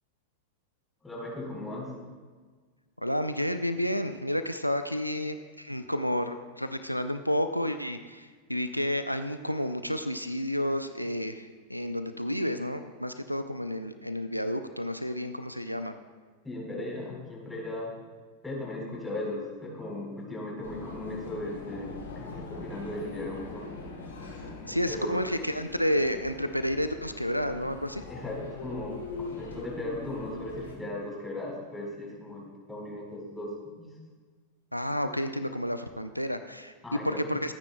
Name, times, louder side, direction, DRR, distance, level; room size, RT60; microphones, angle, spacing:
voice 1, 1.0-1.9 16.4-17.9 18.4-23.7 24.9-25.2 28.1-33.5 33.8-33.9 36.8-37.2, left 1 dB, 5° left, -3 dB, 4.2 m, -37 dB
voice 2, 3.0-15.9 24.7-28.1 34.7-36.7 37.0-37.5, equal, 90° left, 9 dB, 0.5 m, -30 dB
sound 1, 20.6-30.7, left 3 dB, 70° left, 2.3 m, -42 dB
24.5 x 9.7 x 2.2 m, 1.5 s
figure-of-eight pair, 90°, 0 cm